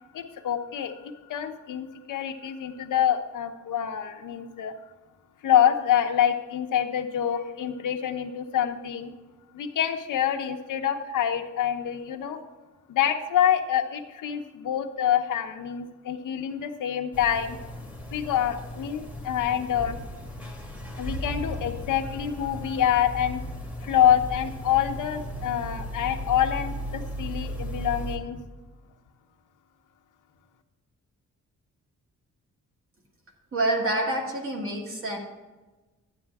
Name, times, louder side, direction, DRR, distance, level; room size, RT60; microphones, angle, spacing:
voice 1, 0.1-4.7 5.4-9.1 9.5-12.4 12.9-17.6 18.1-20.0 21.0-23.4 23.8-28.4, left 9 dB, 90° left, 5 dB, 1.0 m, -26 dB
sound 1, 17.1-28.2, equal, 5° right, 1.4 m, -36 dB
voice 2, 33.5-35.2, right 2 dB, 45° right, 0 dB, 2.1 m, -27 dB
11.5 x 9.2 x 3.5 m, 1.2 s
wide cardioid pair, 170°, 30 cm